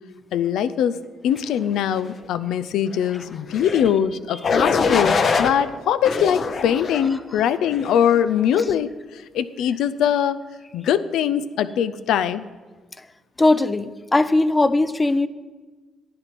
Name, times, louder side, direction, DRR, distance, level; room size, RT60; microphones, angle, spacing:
voice 1, 0.3-1.0 1.2-10.4 10.7-12.4, left 9 dB, 85° left, 14 dB, 0.5 m, -22 dB
sound 1, 3.5-3.9 4.4-5.5 6.0-7.1 7.7-8.0, left 5 dB, 50° left, 0.9 m, -23 dB
voice 2, 13.4-15.3, left 2 dB, 20° left, 15 dB, 0.6 m, -19 dB
11.0 x 8.8 x 5.9 m, 1.3 s
cardioid pair, 90°, 0 cm